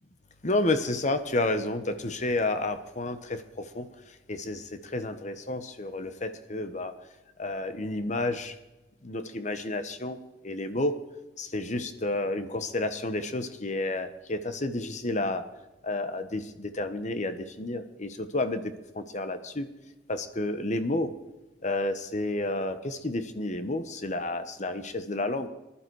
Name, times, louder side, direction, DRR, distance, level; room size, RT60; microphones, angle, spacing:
voice 1, 0.4-3.9 4.3-6.9 7.4-8.5 9.0-10.2 10.4-11.0 11.4-15.4 15.8-18.6 18.9-19.7 20.1-21.1 21.6-25.5, left 2 dB, 40° left, 9 dB, 1.1 m, -30 dB
19.0 x 12.0 x 4.8 m, 1.1 s
head